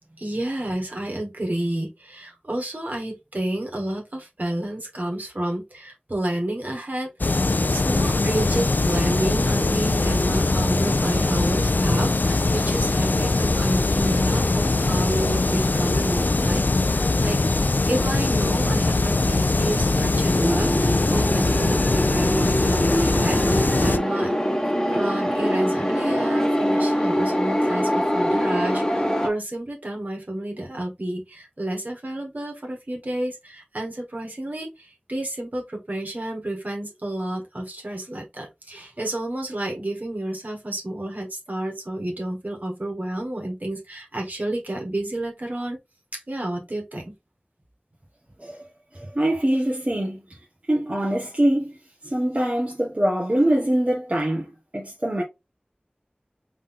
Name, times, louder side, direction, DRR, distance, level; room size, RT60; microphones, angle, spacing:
voice 1, 0.2-24.3 24.9-45.8 46.3-47.1, right 1 dB, 55° right, 1.9 m, -30 dB
sound 1, 7.2-24.0, left 2 dB, 65° left, 0.4 m, -21 dB
sound 2, 20.3-29.3, equal, 15° left, 1.4 m, -23 dB
voice 2, 48.9-50.2 50.7-51.8 52.0-55.2, right 1 dB, 40° right, 1.3 m, -23 dB
3.7 x 3.7 x 3.7 m
wide cardioid pair, 50°, 3 cm